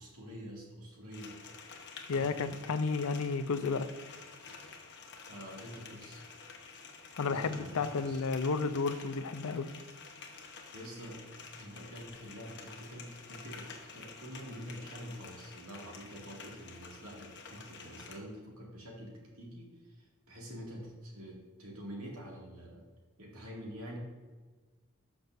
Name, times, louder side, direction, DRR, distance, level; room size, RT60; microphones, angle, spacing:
voice 1, 0.0-1.3 2.1-2.5 5.3-6.2 7.2-8.2 10.7-11.2 11.6-22.9 23.2-24.0, equal, 85° right, -2 dB, 2.2 m, -47 dB
sound 1, 1.1-18.2, left 4 dB, 55° left, 1.0 m, -50 dB
voice 2, 2.1-3.9 7.2-9.7, left 4 dB, 75° left, 12 dB, 0.5 m, -32 dB
12.0 x 6.1 x 2.6 m, 1.4 s
head